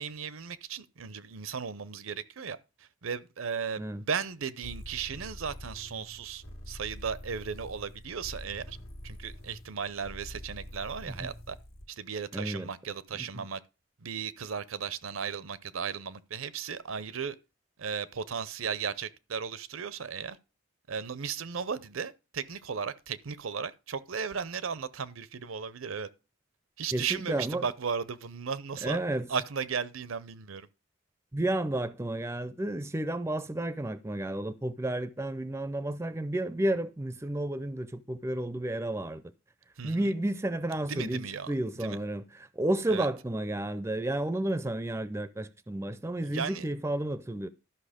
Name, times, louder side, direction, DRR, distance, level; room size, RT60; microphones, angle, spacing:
voice 1, 0.0-2.6 3.0-8.8 9.0-11.6 11.9-13.6 14.0-17.4 17.8-20.4 20.9-26.1 26.8-29.0 29.3-30.7 39.8-40.1 40.9-41.5 41.8-42.0 42.9-43.1 46.2-46.6, right 6 dB, 75° right, 0.6 m, -36 dB
sound 1, 4.6-11.9, equal, 90° left, 1.7 m, -45 dB
voice 2, 12.3-12.7 13.1-13.5 26.9-27.7 28.8-29.3 31.3-39.2 39.8-47.5, right 1 dB, 15° right, 0.4 m, -32 dB
12.5 x 5.7 x 5.0 m
head